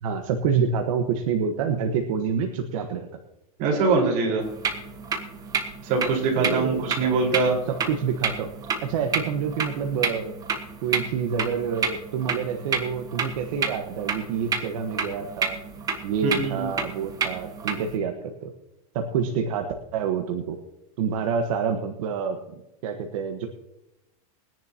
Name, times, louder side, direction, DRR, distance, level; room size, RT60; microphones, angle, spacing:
voice 1, 0.0-3.1 6.3-6.9 7.9-8.5 8.8-10.3 10.8-15.6 16.0-18.5 18.9-19.7 19.9-20.6 21.0-22.4 22.8-23.5, right 6 dB, 65° right, 4 dB, 1.4 m, -27 dB
voice 2, 3.6-4.4 5.8-7.6 16.2-16.7, right 4 dB, 45° right, -1 dB, 4.8 m, -23 dB
sound 1, 4.4-18.0, right 5 dB, 20° right, 1.4 m, -30 dB
22.0 x 10.5 x 2.9 m, 0.93 s
supercardioid pair, 150°, 19 cm